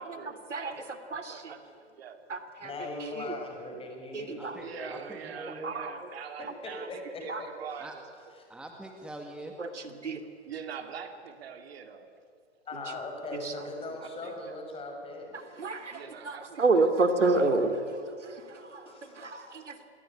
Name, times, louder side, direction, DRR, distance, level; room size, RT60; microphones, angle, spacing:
voice 1, 0.0-1.6 1.9-2.2 4.4-8.0 10.5-12.1 14.0-14.6 15.9-16.9 17.2-17.9, right 7 dB, 60° right, 7 dB, 2.8 m, -44 dB
voice 2, 1.1-1.5 2.3-2.7 3.2-3.3 4.1-4.6 5.6-5.9 7.3-7.4 9.6-9.7 10.0-10.2 13.3-13.5 15.6-17.7 18.2-19.8, right 3 dB, 85° right, 9 dB, 2.9 m, -29 dB
voice 3, 2.6-5.1 6.9-7.5 8.4-8.5 12.7-15.4 18.6-19.2, left 2 dB, 15° left, 2 dB, 5.8 m, -40 dB
voice 4, 4.4-5.7 7.8-8.0 8.5-9.5 18.0-18.1, right 1 dB, 5° right, 3 dB, 1.9 m, -44 dB
27.5 x 21.0 x 9.9 m, 2.3 s
hypercardioid pair, 120°, 35 cm